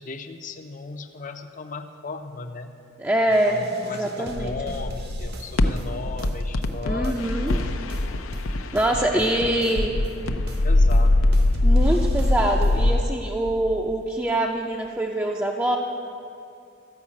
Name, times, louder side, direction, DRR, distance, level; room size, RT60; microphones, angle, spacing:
voice 1, 0.0-2.7 3.5-7.8 8.8-10.1 10.4-11.3, left 3 dB, 40° left, 6 dB, 0.6 m, -36 dB
voice 2, 3.0-3.6 3.8-4.5 6.8-7.6 8.7-9.9 11.6-15.8, right 1 dB, 10° right, -1 dB, 0.5 m, -24 dB
sound 1, 3.3-7.6 7.9-11.0 11.3-13.0, right 1 dB, 55° right, 1.0 m, -43 dB
sound 2, 4.4-13.0, left 1 dB, 90° left, 0.6 m, -22 dB
13.0 x 5.6 x 8.5 m, 2.5 s
head